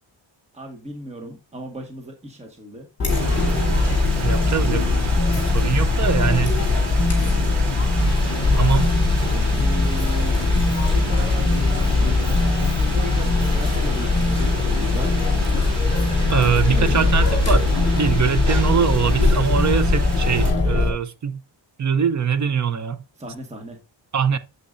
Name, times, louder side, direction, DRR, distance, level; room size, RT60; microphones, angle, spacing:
voice 1, 0.5-2.9 9.4-10.4 10.8-15.1 23.2-23.8, right 1 dB, 15° right, 1.4 m, -35 dB
Chatter, 3.0-20.9, left 3 dB, 30° left, 3.1 m, -20 dB
Rain, 3.1-20.5, right 1 dB, 90° right, 3.3 m, -30 dB
voice 2, 4.2-4.9 5.5-6.6 8.5-8.9 16.3-21.4 21.8-23.0 24.1-24.4, right 7 dB, 40° right, 0.6 m, -22 dB
sound 1, 8.0-19.4, left 2 dB, 10° left, 1.6 m, -40 dB
8.5 x 7.8 x 2.5 m
wide cardioid pair, 170°, 46 cm